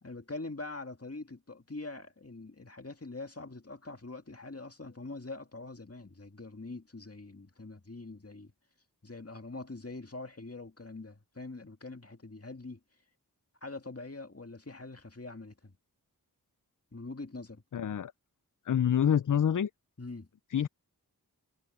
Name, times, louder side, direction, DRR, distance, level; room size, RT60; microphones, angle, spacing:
voice 1, 0.0-8.5 9.0-12.8 13.6-15.7 16.9-17.6 20.0-20.3, left 3 dB, 40° left, 2.1 m, -44 dB
voice 2, 17.7-18.1 18.7-19.7 20.5-20.7, left 9 dB, 55° left, 0.5 m, -26 dB
wide cardioid pair, 55°, 37 cm